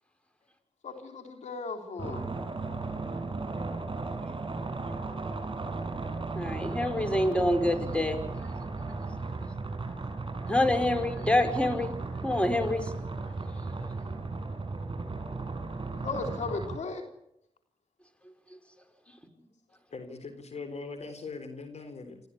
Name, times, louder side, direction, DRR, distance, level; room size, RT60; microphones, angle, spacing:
voice 1, 0.8-2.2 15.9-17.0, left 4 dB, 90° left, 4 dB, 3.6 m, -36 dB
sound 1, 2.0-16.8, right 3 dB, 45° right, 6.6 m, -35 dB
voice 2, 6.3-8.2 10.5-11.9 12.2-12.9, left 1 dB, 10° left, 7 dB, 5.2 m, -26 dB
voice 3, 19.9-22.2, left 4 dB, 70° left, 10 dB, 3.8 m, -41 dB
28.0 x 15.0 x 10.0 m, 0.78 s
cardioid pair, 50°, 12 cm